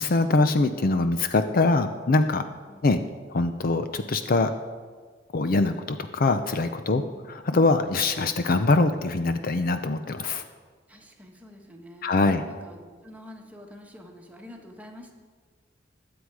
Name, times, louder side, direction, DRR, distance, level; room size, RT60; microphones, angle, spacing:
voice 1, 0.0-2.4 2.8-3.0 3.3-4.5 5.3-7.0 7.3-10.4 12.0-12.4, left 3 dB, 50° left, 9 dB, 0.6 m, -23 dB
voice 2, 2.7-3.0 6.8-7.3 10.9-12.1 12.6-15.1, left 1 dB, 10° right, 1 dB, 1.5 m, -47 dB
20.5 x 7.9 x 4.8 m, 1.5 s
head